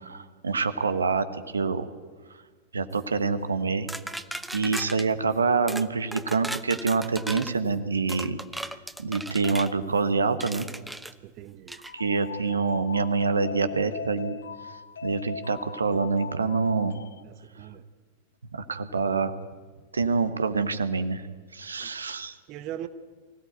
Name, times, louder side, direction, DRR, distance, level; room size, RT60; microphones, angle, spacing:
voice 1, 0.0-1.9 2.7-3.9 4.5-8.4 9.0-10.7 11.9-14.4 15.0-17.0 18.5-19.3 19.9-21.2 21.5-22.3, right 4 dB, 75° right, 10 dB, 1.3 m, -26 dB
sound 1, 3.9-5.1 5.7-5.9 6.1-7.5 8.1-9.7 10.4-11.1 11.7-11.9, right 1 dB, 5° right, 0.9 m, -36 dB
voice 2, 11.2-11.8 17.2-17.8 21.8-21.9 22.5-22.9, right 12 dB, 40° right, 11 dB, 1.1 m, -40 dB
sound 2, 11.9-17.2, left 6 dB, 65° left, 0.8 m, -40 dB
24.0 x 16.5 x 9.3 m, 1.5 s
figure-of-eight pair, 90°, 0 cm